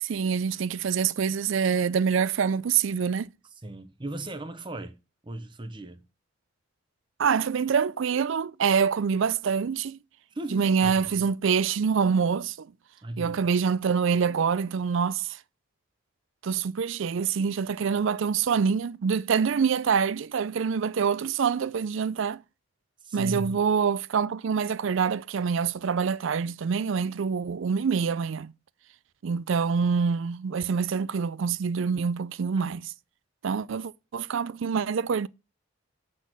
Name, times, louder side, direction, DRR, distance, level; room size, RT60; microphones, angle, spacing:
voice 1, 0.0-3.3 7.2-10.0 10.5-12.7 13.2-15.3 16.4-22.4 23.1-28.5 29.2-32.9 33.4-35.3, right 6 dB, 65° right, 0.4 m, -26 dB
voice 2, 3.4-5.0 5.2-6.0 10.3-11.2 13.0-13.5 23.0-23.6 32.5-32.6, right 1 dB, 25° right, 0.7 m, -37 dB
8.2 x 4.3 x 5.9 m
head